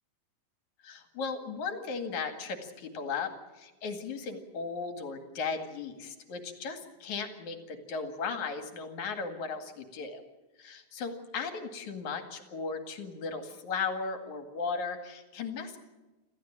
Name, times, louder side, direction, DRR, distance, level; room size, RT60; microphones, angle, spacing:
voice 1, 0.8-10.2 10.6-15.8, left 5 dB, 70° left, 6 dB, 3.5 m, -36 dB
27.0 x 15.5 x 8.8 m, 1.1 s
omnidirectional pair, 3.5 m